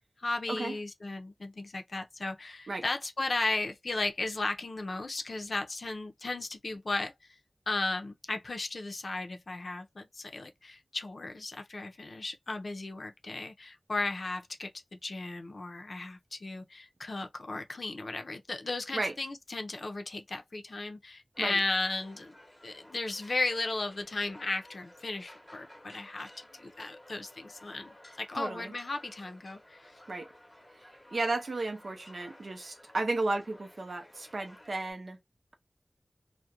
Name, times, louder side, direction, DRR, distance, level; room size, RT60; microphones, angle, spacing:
voice 1, 0.2-7.1 7.7-22.3 22.6-27.9 28.2-29.9, left 2 dB, 75° left, 0.5 m, -35 dB
sound 1, 21.3-34.9, left 1 dB, 15° left, 0.8 m, -55 dB
voice 2, 28.4-28.7 30.1-30.3 31.1-35.2, right 2 dB, 80° right, 0.5 m, -33 dB
2.4 x 2.1 x 2.7 m
wide cardioid pair, 65°, 0 cm